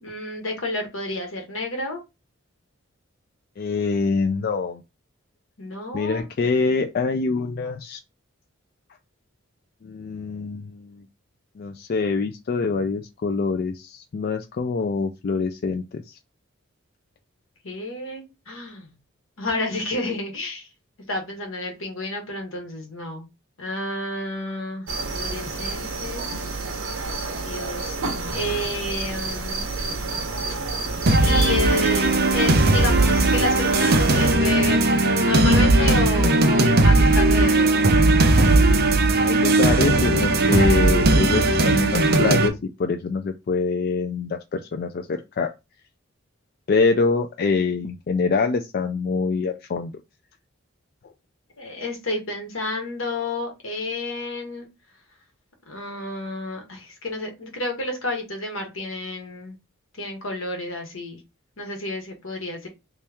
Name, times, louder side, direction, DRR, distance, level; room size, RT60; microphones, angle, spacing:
voice 1, 0.0-2.0 5.6-6.3 17.6-18.9 19.4-20.7 21.1-23.3 23.6-26.4 27.4-28.0 28.3-29.7 31.2-37.8 51.6-54.7 55.7-59.6 59.9-61.2 61.6-62.7, left 2 dB, 80° left, 3 dB, 1.3 m, -30 dB
voice 2, 3.6-4.8 5.9-8.0 9.8-11.0 11.6-16.2 39.2-42.5 42.8-45.5 46.7-49.9, left 4 dB, 50° left, 5 dB, 0.3 m, -25 dB
sound 1, 24.9-34.3, right 3 dB, 80° right, 0.9 m, -30 dB
sound 2, 31.1-42.5, right 2 dB, 50° right, 0.6 m, -18 dB
3.1 x 2.9 x 3.4 m, 0.25 s
head